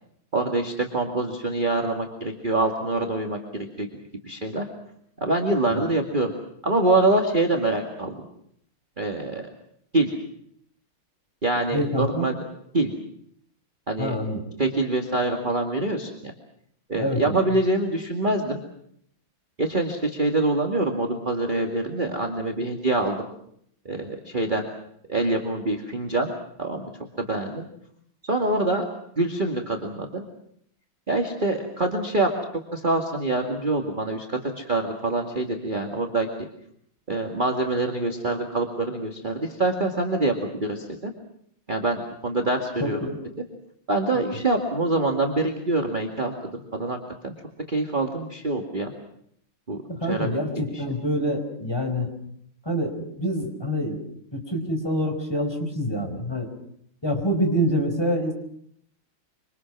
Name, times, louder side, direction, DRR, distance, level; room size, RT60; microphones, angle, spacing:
voice 1, 0.3-3.4 3.8-3.9 4.2-4.6 5.2-6.3 6.6-8.1 9.0-9.4 9.9-10.1 11.4-12.4 12.7-12.9 13.9-14.2 14.6-16.3 16.9-18.6 19.6-23.2 23.9-24.7 25.1-26.3 26.6-26.9 27.2-27.7 28.3-28.8 29.2-30.3 31.1-32.3 32.7-36.3 37.1-41.1 41.7-43.0 43.9-46.5 46.8-47.0 47.2-47.3 47.7-48.9 49.7-50.4 50.7-50.8, right 2 dB, 25° right, 2 dB, 2.3 m, -25 dB
voice 2, 11.7-12.3 14.0-14.4 17.0-17.4 42.8-43.2 49.9-52.1 52.6-54.0 54.3-56.5 57.0-58.3, equal, 10° left, 4 dB, 4.8 m, -26 dB
26.5 x 25.5 x 6.2 m, 0.70 s
omnidirectional pair, 2.3 m